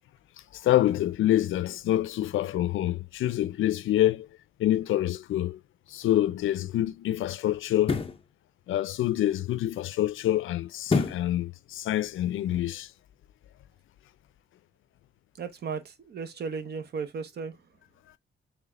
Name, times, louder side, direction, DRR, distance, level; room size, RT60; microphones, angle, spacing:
voice 1, 0.5-4.3 4.6-5.6 5.9-8.0 8.7-12.9, left 13 dB, 75° left, 0.4 m, -26 dB
sound 1, 5.9-6.1 7.8-8.2 10.9-11.3 11.8-11.9, left 4 dB, 25° left, 0.7 m, -27 dB
voice 2, 15.4-17.5, right 5 dB, 55° right, 0.9 m, -35 dB
5.9 x 3.5 x 2.4 m
wide cardioid pair, 155°, 20 cm